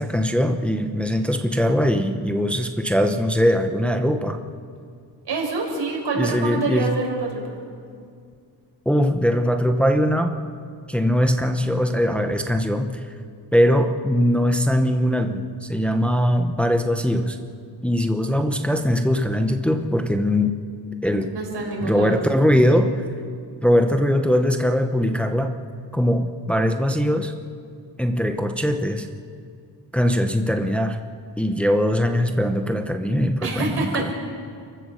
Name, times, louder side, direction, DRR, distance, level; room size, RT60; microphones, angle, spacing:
voice 1, 0.0-4.4 6.1-7.0 8.9-10.3 10.9-13.1 13.5-17.4 17.8-20.6 21.0-21.3 21.8-23.0 23.6-25.6 25.9-27.3 28.0-29.1 29.9-31.0 31.4-34.1, equal, 5° left, 6 dB, 0.8 m, -21 dB
voice 2, 5.2-7.5 21.3-22.2 22.7-22.8 33.4-34.1, right 3 dB, 85° right, 0 dB, 5.4 m, -26 dB
28.0 x 15.5 x 6.6 m, 2.2 s
wide cardioid pair, 145°, 41 cm